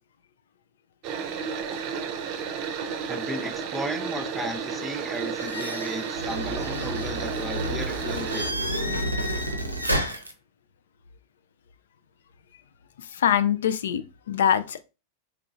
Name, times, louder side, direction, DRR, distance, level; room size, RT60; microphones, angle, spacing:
sound 1, 1.0-8.5, right 6 dB, 40° right, 0.6 m, -32 dB
voice 1, 3.1-8.5, right 1 dB, 5° right, 0.6 m, -35 dB
sound 2, 5.4-10.3, equal, 90° right, 0.6 m, -30 dB
voice 2, 13.0-14.8, left 9 dB, 60° left, 0.4 m, -24 dB
4.7 x 3.3 x 2.4 m
figure-of-eight pair, 90°, 0 cm